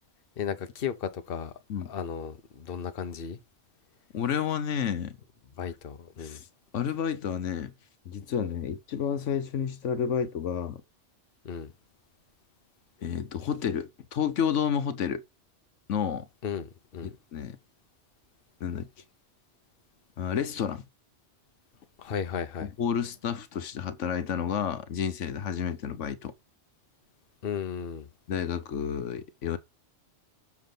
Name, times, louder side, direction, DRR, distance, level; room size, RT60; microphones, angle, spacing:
voice 1, 0.4-1.5 1.9-3.4 5.6-6.4 11.4-11.7 16.4-16.7 16.9-17.1 22.0-22.7 27.4-28.1, left 7 dB, 55° left, 1.1 m, -34 dB
voice 2, 4.1-5.2 6.2-6.5 6.7-7.7 8.1-10.8 13.0-15.2 15.9-16.3 17.0-17.6 18.6-18.9 20.2-20.8 22.6-26.3 28.3-29.6, left 8 dB, 80° left, 1.2 m, -30 dB
7.1 x 7.0 x 3.9 m
omnidirectional pair, 1.2 m